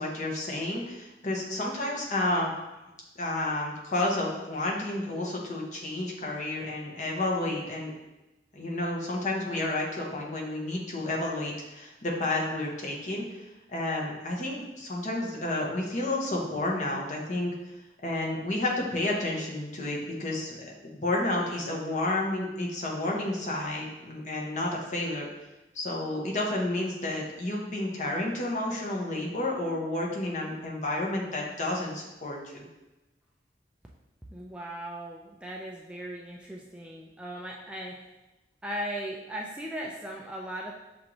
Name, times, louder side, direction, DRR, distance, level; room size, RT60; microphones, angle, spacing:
voice 1, 0.0-2.5 3.2-7.9 8.5-13.4 13.7-17.5 18.0-25.3 25.7-32.6, left 2 dB, 45° left, -2 dB, 0.8 m, -31 dB
voice 2, 34.3-38.0 38.6-40.7, right 1 dB, 5° right, -2 dB, 0.3 m, -38 dB
6.3 x 2.5 x 3.0 m, 1.0 s
head